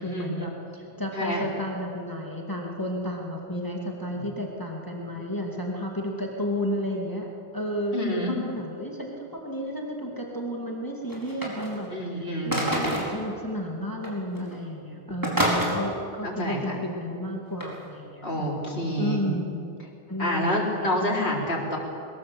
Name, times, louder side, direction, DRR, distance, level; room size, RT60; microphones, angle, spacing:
voice 1, 0.0-7.3 7.5-18.5 19.0-19.7 20.1-20.6, equal, 20° left, -1 dB, 2.3 m, -32 dB
voice 2, 7.9-8.4 11.9-12.6 15.5-15.7 16.2-16.8 18.2-19.3 20.2-21.8, left 1 dB, 70° left, -3 dB, 4.4 m, -28 dB
sound 1, 11.1-11.9 12.5-13.2 14.0-14.1 14.4-14.6 15.2-15.7 17.6-17.7, right 1 dB, 20° right, 4.6 m, -27 dB
22.0 x 21.0 x 7.8 m, 2.6 s
omnidirectional pair, 1.0 m